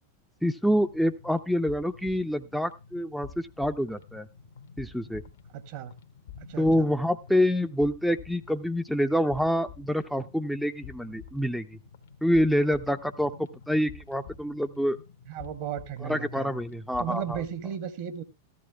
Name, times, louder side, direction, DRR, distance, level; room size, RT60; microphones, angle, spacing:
voice 1, 0.4-4.3 4.8-5.2 6.6-11.8 12.2-13.3 13.7-15.0 16.0-17.4, equal, ahead, 0.5 m, -26 dB
sound 1, 0.8-17.7, left 6 dB, 65° left, 1.0 m, -49 dB
voice 2, 5.5-5.9 6.5-6.9 15.3-16.6 17.0-18.2, right 9 dB, 50° right, 1.0 m, -35 dB
14.5 x 12.5 x 2.3 m
figure-of-eight pair, 90°, 0 cm